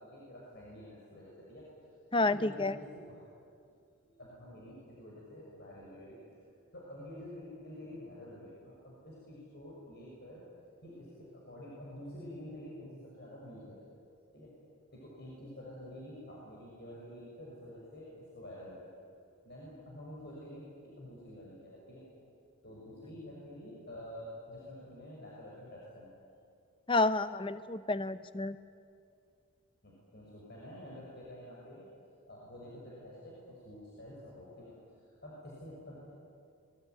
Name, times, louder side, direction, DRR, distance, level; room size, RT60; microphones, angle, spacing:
voice 1, 0.0-1.6 2.2-3.3 4.0-6.3 6.7-10.4 10.8-13.9 14.3-14.5 14.9-18.9 19.4-22.0 22.6-26.1 29.8-31.9 32.3-34.7 35.2-36.1, left 1 dB, 45° left, -5 dB, 6.1 m, -48 dB
voice 2, 2.1-2.8 26.9-28.6, left 2 dB, 20° left, 13 dB, 0.7 m, -30 dB
24.5 x 21.0 x 9.4 m, 2.4 s
head